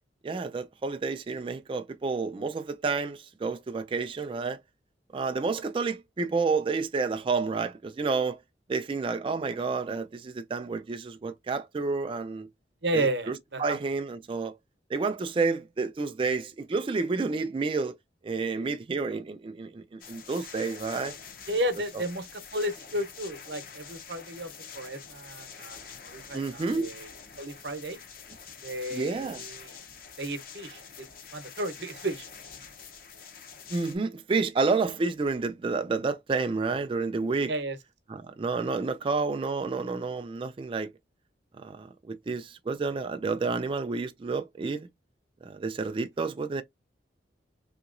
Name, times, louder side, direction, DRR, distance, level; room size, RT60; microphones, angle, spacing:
voice 1, 0.2-4.6 5.1-8.4 8.7-12.5 12.9-14.6 14.9-17.9 18.2-21.2 21.9-22.0 26.3-26.9 28.9-29.4 33.7-37.5 38.1-40.9 41.6-44.9 45.4-46.6, right 4 dB, 30° right, 0.3 m, -30 dB
voice 2, 12.8-13.8 21.5-27.1 27.4-28.0 28.6-29.7 30.2-31.1 31.3-32.3 37.4-37.8, right 1 dB, 70° right, 0.8 m, -33 dB
sound 1, 20.0-34.0, left 6 dB, 55° left, 0.7 m, -46 dB
3.7 x 2.9 x 2.5 m
head